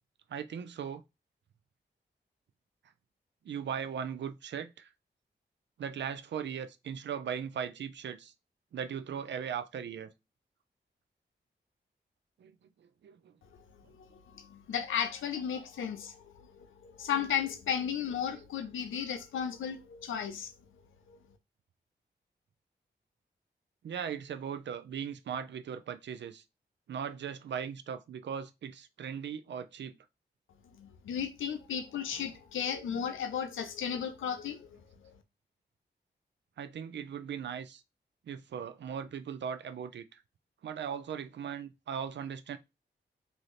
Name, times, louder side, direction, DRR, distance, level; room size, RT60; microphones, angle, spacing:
voice 1, 0.3-1.0 3.4-4.9 5.8-8.3 8.7-10.1 12.4-12.5 12.8-13.3 23.8-26.4 26.9-30.0 36.6-37.8 38.3-40.2 40.6-42.6, right 8 dB, 65° right, 0.4 m, -38 dB
voice 2, 14.3-16.2 16.5-20.5 30.8-34.7 35.0-35.1, left 8 dB, 90° left, 0.5 m, -34 dB
2.7 x 2.5 x 3.1 m
cardioid pair, 45°, 20 cm